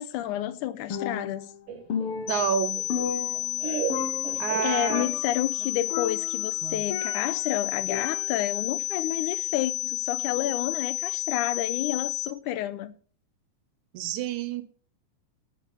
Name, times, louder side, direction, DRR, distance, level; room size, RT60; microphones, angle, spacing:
voice 1, 0.0-1.5 4.6-12.9, left 13 dB, 85° left, 2.2 m, -30 dB
Percussion, 0.9-1.6 1.9-3.7 3.9-4.6 4.9-5.4 5.9-7.5 7.9-8.6, left 7 dB, 65° left, 1.5 m, -34 dB
Laughter, 1.7-5.3, right 7 dB, 60° right, 2.1 m, -36 dB
sound 1, 2.3-12.3, left 16 dB, 5° left, 3.6 m, -31 dB
voice 2, 2.3-2.8 4.4-5.1 6.6-6.8 13.9-14.6, right 9 dB, 75° right, 2.3 m, -29 dB
10.0 x 8.2 x 5.6 m
omnidirectional pair, 3.5 m